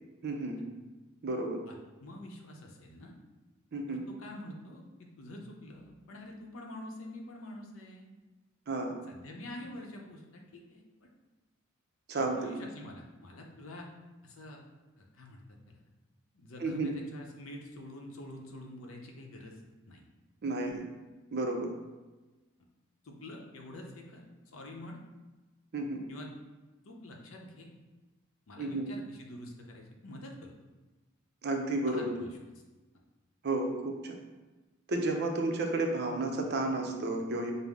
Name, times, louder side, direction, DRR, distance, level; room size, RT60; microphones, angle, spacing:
voice 1, 0.2-0.6 1.2-1.6 3.7-4.0 8.7-8.9 12.1-12.4 16.6-16.9 20.4-20.8 21.3-21.7 25.7-26.0 28.6-28.9 31.4-32.1 33.4-34.1 34.9-37.5, right 2 dB, 55° right, 3 dB, 0.5 m, -32 dB
voice 2, 1.7-3.1 3.9-8.1 9.1-10.8 12.2-13.9 14.2-14.6 15.0-15.8 16.3-20.0 23.0-24.2 24.5-25.0 26.1-26.3 26.8-27.7 28.5-30.5 31.9-32.3, left 1 dB, 75° left, 1 dB, 0.6 m, -46 dB
5.3 x 2.0 x 3.5 m, 1.2 s
head